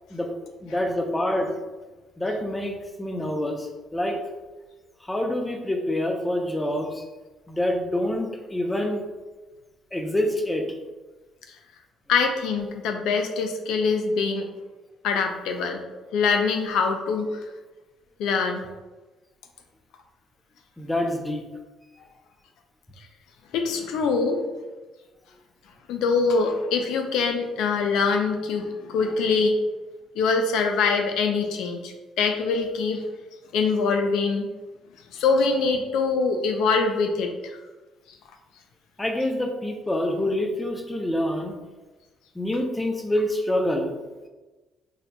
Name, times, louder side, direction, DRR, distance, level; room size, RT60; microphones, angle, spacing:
voice 1, 0.6-1.5 2.2-4.2 5.0-7.0 7.5-9.0 9.9-10.7 20.8-21.4 39.0-41.6 42.3-44.0, left 1 dB, 10° left, 3 dB, 0.6 m, -26 dB
voice 2, 12.1-14.5 15.0-15.8 16.1-17.4 18.2-18.6 23.5-24.4 25.9-29.6 30.2-33.0 33.5-34.5 35.1-37.5, left 4 dB, 85° left, 4 dB, 0.4 m, -24 dB
4.3 x 3.9 x 2.2 m, 1.2 s
cardioid pair, 100°, 0 cm